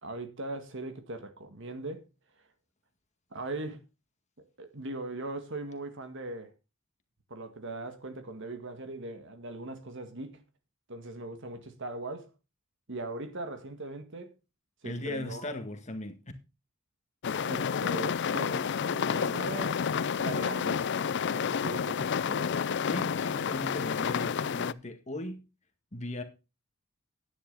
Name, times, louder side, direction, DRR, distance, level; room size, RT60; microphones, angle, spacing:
voice 1, 0.0-2.1 3.3-3.8 4.6-6.5 7.3-10.4 10.9-12.3 12.9-14.3 14.8-15.5 17.4-19.8 20.1-20.9 21.2-22.5, right 2 dB, 60° right, 1.9 m, -40 dB
voice 2, 14.8-16.2 22.8-25.4 25.9-26.2, left 1 dB, 35° left, 1.8 m, -38 dB
sound 1, 17.2-24.7, left 6 dB, 55° left, 0.4 m, -30 dB
10.5 x 10.0 x 4.0 m
head